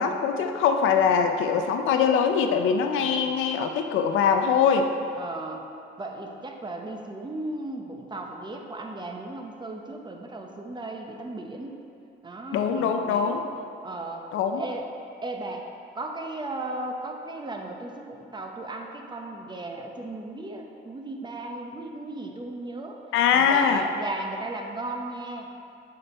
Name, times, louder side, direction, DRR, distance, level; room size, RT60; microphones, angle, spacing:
voice 1, 0.0-4.9 12.5-13.4 14.3-14.6 23.1-23.9, left 6 dB, 85° left, 6 dB, 0.5 m, -22 dB
voice 2, 3.0-3.4 5.2-5.6 6.0-11.7 12.2-13.3 13.8-14.3 14.5-14.9 15.2-15.7 15.9-23.0 23.3-25.5, right 2 dB, 20° right, 2 dB, 0.8 m, -36 dB
6.9 x 5.2 x 4.3 m, 2.6 s
cardioid pair, 90°, 20 cm